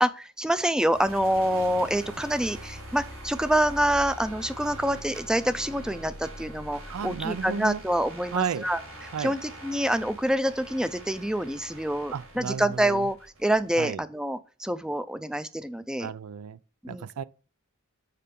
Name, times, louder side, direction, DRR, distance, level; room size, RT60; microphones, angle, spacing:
voice 1, 0.0-8.8 9.2-16.1 16.8-17.1, right 1 dB, 5° right, 0.4 m, -26 dB
sound 1, 0.9-13.7, right 1 dB, 70° right, 4.2 m, -43 dB
voice 2, 6.9-7.8 8.3-8.7 9.1-9.3 12.1-13.1 13.8-14.0 16.0-16.6 16.9-17.2, right 7 dB, 90° right, 0.4 m, -33 dB
6.7 x 5.1 x 5.2 m
head